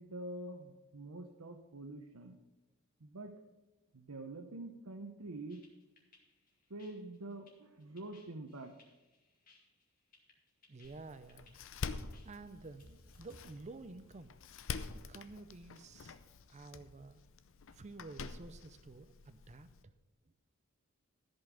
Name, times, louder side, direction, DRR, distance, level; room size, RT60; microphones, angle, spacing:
voice 1, 0.0-2.4 3.0-3.3 3.9-5.6 6.7-8.7, right 2 dB, 80° right, 3 dB, 0.9 m, -46 dB
sound 1, 5.5-13.4, left 2 dB, 40° left, 2.2 m, -64 dB
voice 2, 10.7-11.6 12.2-14.4 14.9-16.2 16.5-17.2 17.7-19.7, right 3 dB, 35° right, 11 dB, 0.5 m, -51 dB
Door, 10.8-19.8, left 4 dB, 65° left, 0.6 m, -47 dB
14.0 x 5.5 x 7.0 m, 1.1 s
head